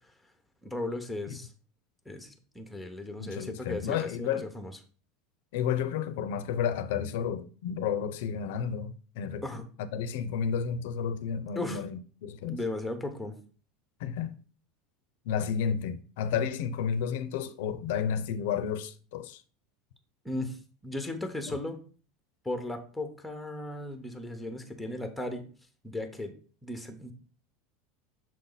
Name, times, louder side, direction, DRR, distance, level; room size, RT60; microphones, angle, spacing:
voice 1, 0.6-1.5 2.1-4.7 9.4-9.6 11.5-11.8 12.5-13.3 20.2-20.6 20.8-21.8 22.4-25.5 25.8-26.4 26.6-27.1, left 2 dB, ahead, 0.8 m, -36 dB
voice 2, 3.2-4.5 5.5-9.4 9.9-12.6 14.0-14.4 15.3-19.4 21.5-21.6, left 7 dB, 75° left, 0.6 m, -31 dB
6.5 x 4.2 x 3.9 m
supercardioid pair, 150°, 0 cm